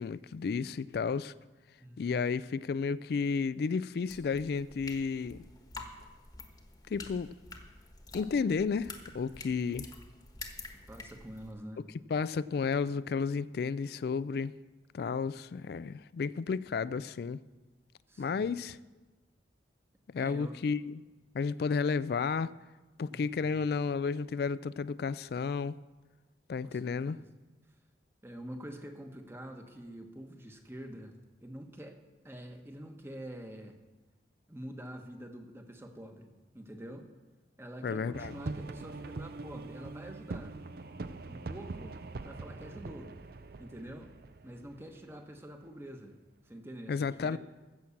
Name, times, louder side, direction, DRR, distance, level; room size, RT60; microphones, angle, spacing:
voice 1, 0.0-1.3 2.0-5.4 6.9-7.3 8.1-9.9 12.1-14.5 14.9-17.4 18.2-18.8 20.1-21.0 21.3-22.5 23.0-25.8 26.5-27.2 37.8-38.3 46.9-47.4, left 5 dB, 60° left, 0.3 m, -32 dB
voice 2, 1.8-2.2 10.7-11.8 18.1-18.5 20.2-20.6 23.0-23.6 26.6-27.3 28.2-31.1 31.4-32.0 32.2-33.8 34.5-37.1 37.6-40.5 41.3-43.1 43.6-44.1 44.4-46.2 46.4-47.4, equal, 15° right, 1.0 m, -46 dB
sound 1, 4.1-11.5, left 3 dB, 20° left, 1.2 m, -48 dB
sound 2, 38.1-45.6, right 3 dB, 60° right, 0.5 m, -43 dB
15.0 x 6.1 x 7.1 m
head